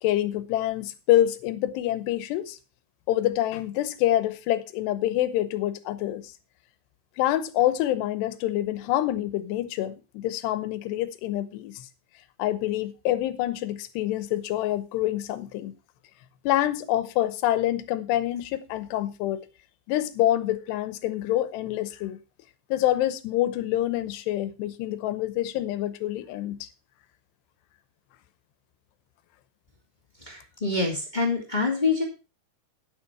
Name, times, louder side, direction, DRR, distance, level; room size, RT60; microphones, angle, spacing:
voice 1, 0.0-2.6 3.1-6.3 7.2-11.9 12.4-15.8 16.4-19.4 19.9-22.2 22.7-26.7, left 13 dB, 85° left, 3.0 m, -26 dB
voice 2, 30.2-32.0, left 3 dB, 15° left, 1.7 m, -26 dB
9.7 x 9.3 x 4.6 m
omnidirectional pair, 4.7 m